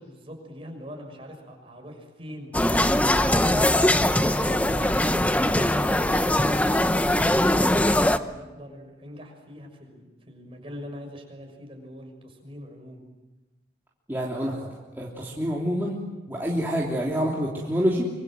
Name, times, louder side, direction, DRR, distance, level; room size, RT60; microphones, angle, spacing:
voice 1, 0.0-5.4 5.8-13.1, equal, 30° right, 3 dB, 6.2 m, -42 dB
sound 1, 2.5-8.2, left 1 dB, 10° left, 0.8 m, -21 dB
voice 2, 14.1-14.7 15.0-16.0 16.3-18.0, equal, 10° right, -5 dB, 3.2 m, -27 dB
25.5 x 25.5 x 7.7 m, 1.1 s
head